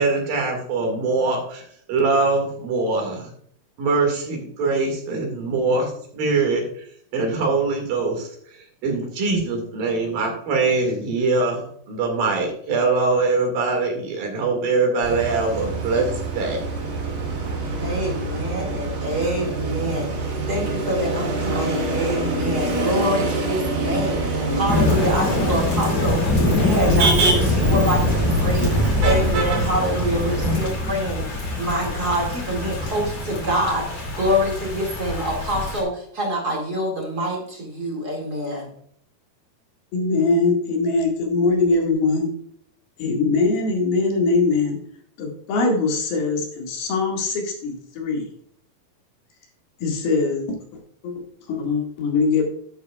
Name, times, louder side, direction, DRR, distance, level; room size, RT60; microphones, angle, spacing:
voice 1, 0.0-3.3 3.8-6.8 7.1-16.6, right 3 dB, 70° right, 2 dB, 3.7 m, -23 dB
Motor vehicle (road), 15.0-30.7, right 2 dB, 90° right, 4.7 m, -26 dB
voice 2, 17.7-26.2 26.6-38.8, equal, 30° right, -1 dB, 2.2 m, -26 dB
Thunder / Rain, 24.7-35.8, left 2 dB, 45° left, 3.3 m, -23 dB
voice 3, 39.9-42.3 43.0-44.8 45.2-48.3 49.8-50.5 51.0-51.1 51.5-52.6, left 3 dB, 85° left, 0 dB, 3.8 m, -22 dB
12.5 x 8.1 x 2.4 m, 0.64 s
omnidirectional pair, 4.2 m